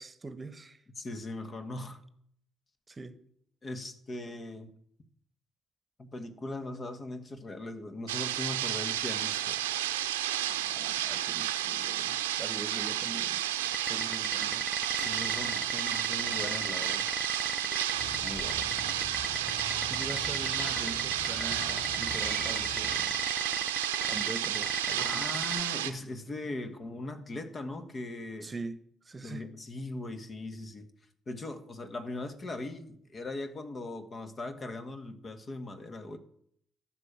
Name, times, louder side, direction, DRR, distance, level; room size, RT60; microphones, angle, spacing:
voice 1, 0.0-0.8 2.9-3.2 10.7-13.4 13.8-14.7 19.9-23.0 24.1-25.2 28.4-28.8 29.0-29.4, right 3 dB, 30° right, 1.1 m, -42 dB
voice 2, 0.9-2.0 3.6-4.7 6.0-9.6 15.0-17.1 18.2-18.8 25.0-28.5 29.2-30.9 31.3-36.2, left 2 dB, 40° left, 1.7 m, -39 dB
sound 1, 8.1-25.9, right 12 dB, 80° right, 0.7 m, -32 dB
sound 2, 13.6-25.6, right 1 dB, 5° right, 0.7 m, -34 dB
Crow, 17.9-23.0, equal, 85° left, 4.2 m, -41 dB
13.0 x 6.1 x 8.8 m
figure-of-eight pair, 40°, 0 cm